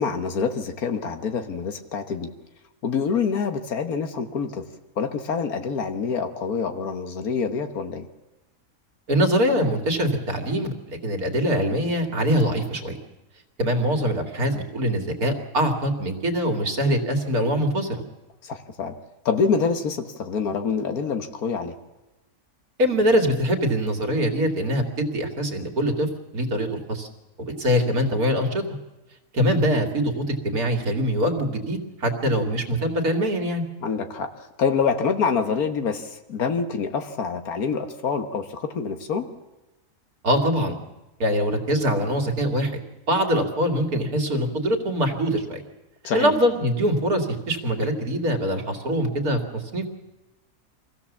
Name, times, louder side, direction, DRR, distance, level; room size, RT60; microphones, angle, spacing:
voice 1, 0.0-2.3 2.8-4.7 5.0-8.1 18.4-18.9 19.3-21.7 33.8-34.3 34.6-39.3 46.0-46.3, left 5 dB, 70° left, 8 dB, 1.7 m, -26 dB
voice 2, 9.1-13.0 13.6-18.0 22.8-27.1 27.4-28.6 29.3-33.6 40.2-40.8 41.2-42.7 43.1-45.6 46.1-49.9, equal, 75° right, 3 dB, 2.5 m, -23 dB
24.0 x 15.5 x 7.2 m, 1.0 s
omnidirectional pair, 1.6 m